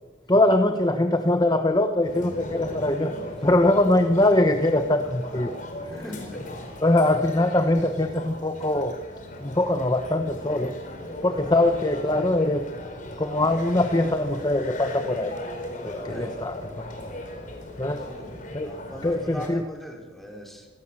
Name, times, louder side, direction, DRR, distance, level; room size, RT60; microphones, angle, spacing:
voice 1, 0.3-5.5 5.8-6.0 6.8-9.0 9.4-10.8 11.2-12.7 13.2-15.4 15.8-17.1 17.8-18.0 18.5-18.7 19.0-19.7, left 1 dB, 20° left, 7 dB, 1.0 m, -22 dB
sound 1, 2.0-19.5, left 1 dB, 45° left, 4.8 m, -37 dB
voice 2, 5.9-6.4 16.1-16.4 18.1-18.3 18.6-20.7, equal, ahead, 1 dB, 4.4 m, -40 dB
26.5 x 18.5 x 7.5 m, 1.3 s
head